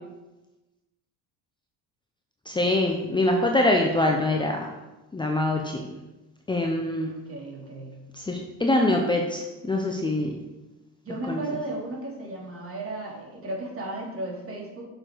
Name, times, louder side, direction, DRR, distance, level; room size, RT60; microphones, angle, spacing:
voice 1, 2.5-4.7 5.1-5.9 6.5-7.1 8.1-10.4 11.3-11.4, left 1 dB, 10° left, 1 dB, 0.8 m, -24 dB
voice 2, 7.0-8.0 11.0-14.8, right 2 dB, 35° right, -2 dB, 2.8 m, -35 dB
7.0 x 5.9 x 4.6 m, 1.1 s
supercardioid pair, 90°, 40 cm